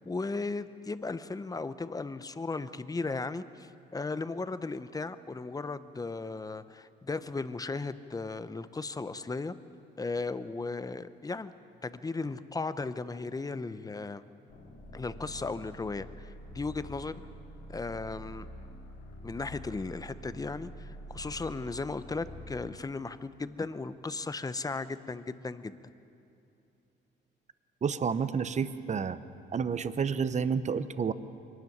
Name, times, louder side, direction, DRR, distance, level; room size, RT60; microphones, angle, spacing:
voice 1, 0.1-9.5 10.0-11.5 11.8-14.2 14.9-17.2 17.7-18.5 19.2-25.8, left 3 dB, 20° left, 13 dB, 0.7 m, -36 dB
sound 1, 14.5-22.7, equal, 70° left, 3.5 m, -46 dB
voice 2, 27.8-29.2 29.5-31.1, right 6 dB, 35° right, 13 dB, 0.8 m, -30 dB
22.5 x 12.5 x 9.4 m, 2.7 s
cardioid pair, 90°, 20 cm